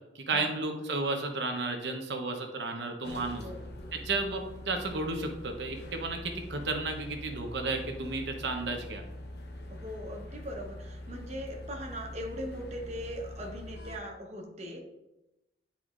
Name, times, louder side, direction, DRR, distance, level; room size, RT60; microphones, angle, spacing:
voice 1, 0.1-3.4 3.9-9.0, right 3 dB, 75° right, 4 dB, 0.9 m, -33 dB
sound 1, 3.0-14.0, left 1 dB, 65° left, 0.8 m, -44 dB
voice 2, 9.7-14.9, equal, 40° right, 1 dB, 1.0 m, -40 dB
9.5 x 4.2 x 2.5 m, 0.96 s
head